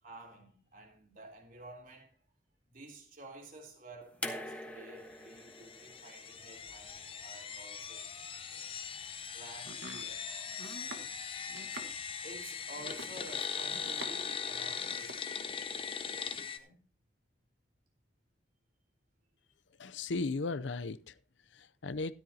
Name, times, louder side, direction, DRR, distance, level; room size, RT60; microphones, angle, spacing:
voice 1, 0.0-2.2 2.7-8.1 9.2-11.1 12.2-15.6 16.1-16.8, right 2 dB, 45° right, 3.2 m, -52 dB
sound 1, 4.2-7.4 8.6-8.7, left 1 dB, 10° left, 1.3 m, -44 dB
sound 2, 5.4-16.6, left 6 dB, 30° left, 0.9 m, -40 dB
Domestic sounds home sounds, 9.6-14.4 14.7-15.3, right 2 dB, 70° right, 1.5 m, -48 dB
voice 2, 19.8-22.2, left 3 dB, 75° left, 0.6 m, -37 dB
13.5 x 13.0 x 2.8 m
head